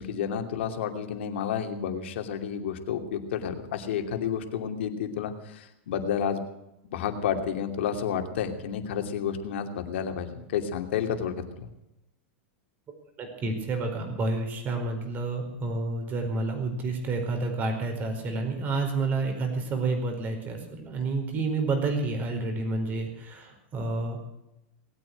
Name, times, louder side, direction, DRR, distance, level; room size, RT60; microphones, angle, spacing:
voice 1, 0.0-6.4 6.9-11.7, left 8 dB, 75° left, 5 dB, 2.7 m, -30 dB
voice 2, 13.2-24.2, right 3 dB, 30° right, 4 dB, 4.8 m, -29 dB
19.5 x 8.9 x 8.0 m, 0.88 s
supercardioid pair, 140°, 6 cm